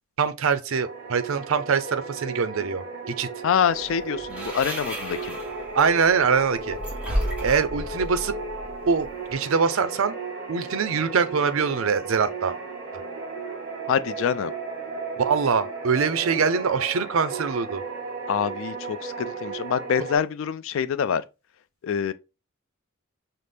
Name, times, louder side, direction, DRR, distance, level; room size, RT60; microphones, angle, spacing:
voice 1, 0.2-3.3 5.7-6.8 7.4-8.3 8.9-10.2 10.5-12.6 15.2-17.8, right 5 dB, 65° right, 0.5 m, -23 dB
sound 1, 0.7-20.2, right 4 dB, 50° right, 1.3 m, -35 dB
voice 2, 3.4-5.4 13.9-14.5 18.3-21.2 21.8-22.1, left 7 dB, 65° left, 0.3 m, -25 dB
sound 2, 3.7-9.3, equal, 5° right, 1.0 m, -34 dB
5.6 x 2.0 x 3.3 m
head